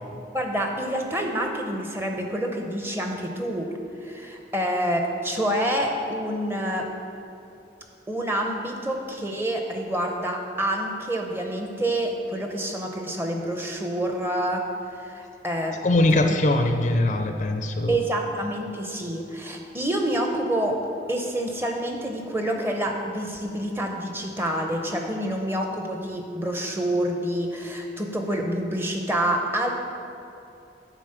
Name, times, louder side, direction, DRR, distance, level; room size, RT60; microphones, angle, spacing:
voice 1, 0.3-3.7 4.0-6.9 8.1-14.7 14.9-15.8 17.9-20.8 21.1-29.7, right 1 dB, 15° right, 2 dB, 0.7 m, -27 dB
voice 2, 15.7-18.0, left 2 dB, 45° left, 6 dB, 0.4 m, -22 dB
9.2 x 4.0 x 6.6 m, 2.8 s
head